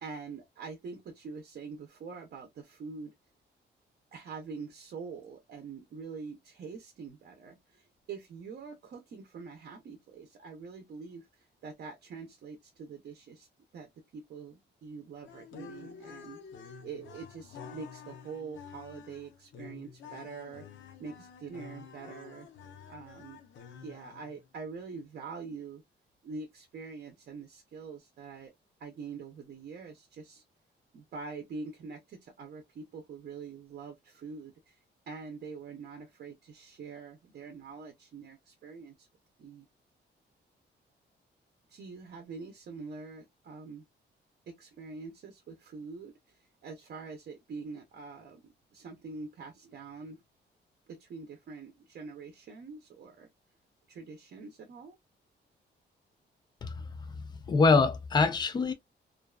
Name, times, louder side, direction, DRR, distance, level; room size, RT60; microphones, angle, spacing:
voice 1, 0.0-3.1 4.1-13.5 13.7-16.4 16.8-20.7 21.0-22.5 22.9-23.4 23.8-25.8 26.2-28.5 28.8-30.4 30.9-34.8 35.1-39.1 39.4-39.7 41.7-43.8 44.5-50.2 50.9-53.3 53.9-55.0, right 4 dB, 55° right, 0.6 m, -45 dB
sound 1, 15.2-24.5, left 6 dB, 80° left, 0.6 m, -49 dB
voice 2, 57.2-58.7, left 4 dB, 25° left, 0.4 m, -25 dB
2.5 x 2.3 x 2.3 m
wide cardioid pair, 180°, 19 cm